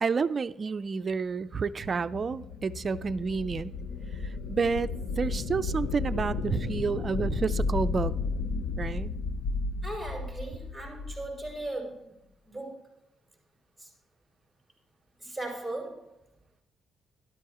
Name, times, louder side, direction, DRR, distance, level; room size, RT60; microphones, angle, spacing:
voice 1, 0.0-3.7 4.5-4.9 5.2-8.1 8.8-9.1, right 5 dB, 40° right, 14 dB, 0.4 m, -29 dB
sound 1, 1.5-11.6, left 4 dB, 85° left, 0.6 m, -33 dB
voice 2, 9.8-12.1 12.4-12.9 13.8-13.9 15.2-16.1, right 2 dB, 10° left, -3 dB, 4.7 m, -38 dB
12.5 x 11.5 x 3.0 m, 0.86 s
cardioid pair, 90°, 0 cm